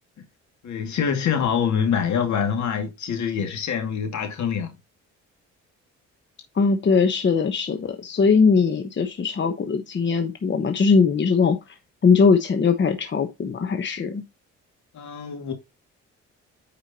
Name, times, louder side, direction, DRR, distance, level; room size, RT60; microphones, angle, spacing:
voice 1, 0.6-4.7 14.9-15.5, left 7 dB, 70° left, 2.3 m, -25 dB
voice 2, 6.5-11.6 12.0-14.2, left 5 dB, 40° left, 1.1 m, -20 dB
9.1 x 5.0 x 2.9 m
cardioid pair, 90°, 30 cm